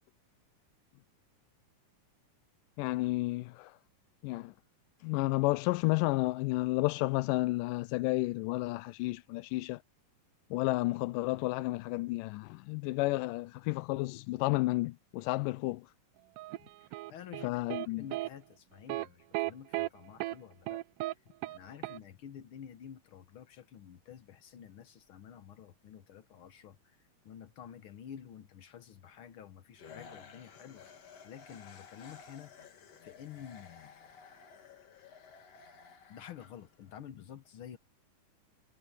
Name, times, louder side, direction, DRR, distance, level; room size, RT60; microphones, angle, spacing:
voice 1, 2.8-3.8 4.2-4.5 5.0-9.8 10.5-15.9 17.4-18.1, left 20 dB, 90° left, 2.2 m, -31 dB
sound 1, 16.4-17.9 18.1-18.3 18.9-19.1 19.3-19.9 20.2-20.4 20.7-21.1 21.4-21.6 21.8-22.0, right 18 dB, 85° right, 2.2 m, -35 dB
voice 2, 16.6-17.6 18.0-20.8 21.5-27.0 27.2-30.9 31.2-32.5 33.0-33.9 36.1-37.8, left 9 dB, 70° left, 1.2 m, -50 dB
sound 2, 29.8-37.0, left 6 dB, 50° left, 3.3 m, -54 dB
omnidirectional pair, 3.7 m